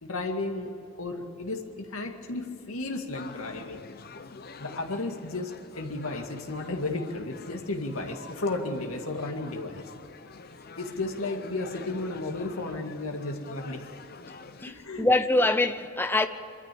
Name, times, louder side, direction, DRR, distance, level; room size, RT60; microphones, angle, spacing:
voice 1, 0.0-3.8 4.6-9.8 10.8-13.9 14.7-15.1, left 2 dB, 75° left, 2.2 m, -33 dB
sound 1, 3.1-14.7, left 4 dB, 45° left, 0.8 m, -46 dB
voice 2, 14.6-16.3, left 2 dB, 10° left, 0.8 m, -24 dB
24.5 x 13.0 x 8.6 m
head